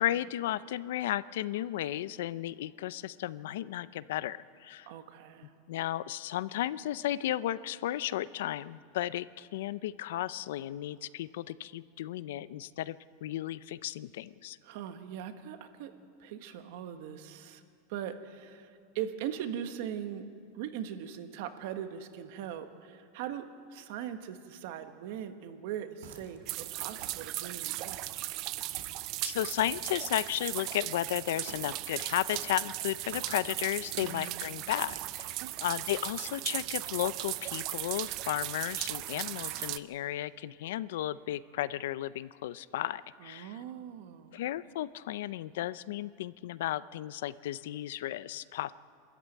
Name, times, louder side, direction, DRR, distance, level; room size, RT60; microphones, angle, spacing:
voice 1, 0.0-4.9 5.7-14.6 29.2-35.3 35.6-43.6 44.3-48.7, left 13 dB, 70° left, 17 dB, 0.5 m, -34 dB
voice 2, 4.9-5.5 14.6-15.9 16.2-17.6 17.9-20.3 20.5-28.0 34.0-34.6 35.4-35.7 43.2-44.3, right 9 dB, 55° right, 8 dB, 1.4 m, -40 dB
sound 1, 26.0-26.5 27.0-27.3 27.9-28.2 28.7-29.1 29.6-30.0 31.5-31.8 32.3-32.6 33.1-33.4 33.9-34.3 34.9-35.2, right 7 dB, 80° right, 2.4 m, -49 dB
sound 2, 26.5-39.8, right 17 dB, 35° right, 0.5 m, -37 dB
25.0 x 13.5 x 9.1 m, 2.3 s
supercardioid pair, 175°, 0 cm